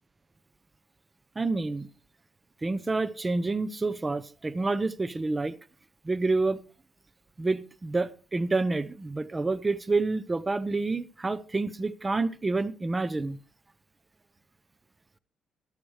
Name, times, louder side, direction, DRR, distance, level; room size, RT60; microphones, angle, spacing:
voice 1, 1.4-1.9 2.6-5.5 6.0-6.6 7.4-13.4, right 3 dB, 20° right, 0.7 m, -28 dB
13.5 x 12.5 x 3.3 m
cardioid pair, 90°, 0 cm